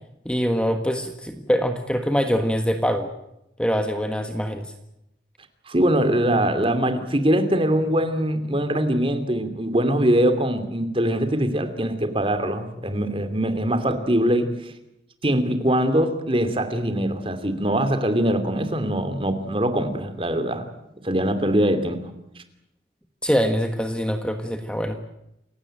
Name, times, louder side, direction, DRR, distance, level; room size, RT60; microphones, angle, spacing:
voice 1, 0.2-3.1 3.6-4.7 23.2-25.0, equal, 5° left, 6 dB, 1.4 m, -24 dB
voice 2, 5.7-14.5 15.2-20.7 21.0-22.0, right 1 dB, 30° right, 9 dB, 2.8 m, -22 dB
28.5 x 17.0 x 8.9 m, 0.85 s
head